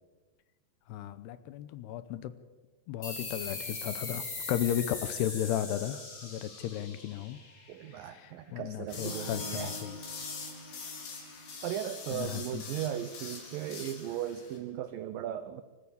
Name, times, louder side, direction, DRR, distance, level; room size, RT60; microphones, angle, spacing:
voice 1, 0.9-2.3 2.9-7.4 7.9-10.0 12.1-12.6, left 11 dB, 80° left, 13 dB, 2.7 m, -35 dB
sound 1, 3.0-8.2, left 3 dB, 30° left, 1.4 m, -40 dB
voice 2, 7.7-9.8 11.6-15.6, right 11 dB, 85° right, 11 dB, 1.9 m, -37 dB
sound 2, 8.7-14.6, equal, 10° right, 3.1 m, -50 dB
sound 3, 8.9-14.6, left 4 dB, 55° left, 4.9 m, -43 dB
25.0 x 14.5 x 8.5 m, 1.3 s
omnidirectional pair, 5.1 m